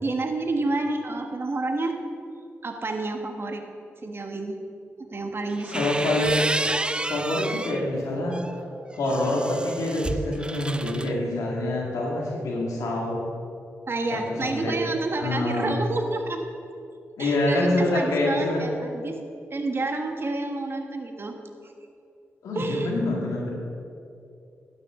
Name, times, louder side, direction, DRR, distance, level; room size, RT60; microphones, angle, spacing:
voice 1, 0.0-1.9 2.6-3.6 4.0-4.6 5.1-5.8 13.9-16.4 17.2-19.2 19.5-21.4 21.6-21.7 22.5-22.9, right 2 dB, 45° right, 4 dB, 1.3 m, -29 dB
sound 1, 5.5-7.8 8.3-11.1, right 2 dB, 15° right, 0.4 m, -30 dB
voice 2, 5.7-6.4 7.1-8.4 8.9-13.2 14.1-14.7 15.2-15.7 17.2-18.6 22.4-23.5, left 1 dB, 85° left, -2 dB, 2.0 m, -26 dB
12.0 x 9.6 x 3.7 m, 2.6 s
cardioid pair, 50°, 5 cm